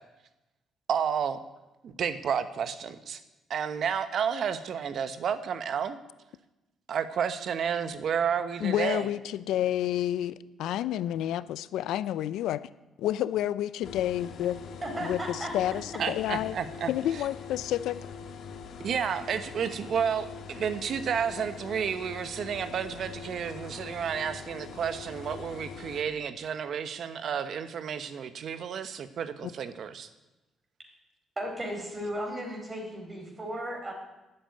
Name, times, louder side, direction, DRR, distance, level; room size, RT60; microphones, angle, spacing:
voice 1, 0.9-1.4 1.8-3.2 3.5-6.0 6.9-9.1 16.0-16.9 18.8-30.1, right 7 dB, 65° right, 11 dB, 1.2 m, -31 dB
voice 2, 8.6-12.6 13.0-14.6 15.0-16.6 16.9-18.0, left 12 dB, 85° left, 16 dB, 0.5 m, -29 dB
sound 1, 13.8-26.0, left 6 dB, 70° left, 1.6 m, -43 dB
voice 3, 14.8-15.5 31.4-33.9, equal, 25° right, 2 dB, 4.9 m, -35 dB
11.5 x 8.8 x 9.5 m, 1.0 s
cardioid pair, 90°, 0 cm